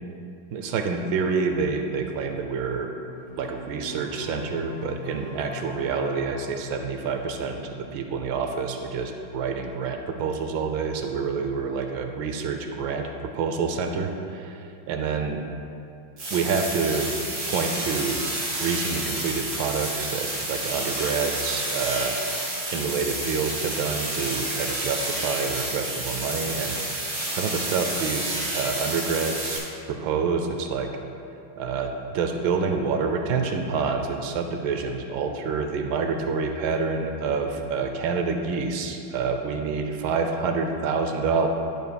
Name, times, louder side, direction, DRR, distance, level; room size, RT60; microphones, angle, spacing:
voice 1, 0.5-2.9 3.4-15.5 16.3-17.2 17.5-18.2 18.6-22.2 22.7-29.6 29.9-30.9 31.6-41.5, right 5 dB, 75° right, 5 dB, 1.3 m, -27 dB
sound 1, 3.1-7.6, left 2 dB, 65° left, 2.0 m, -41 dB
sound 2, 16.2-29.6, right 1 dB, 50° right, 2.5 m, -30 dB
11.0 x 8.0 x 2.2 m, 2.6 s
omnidirectional pair, 2.3 m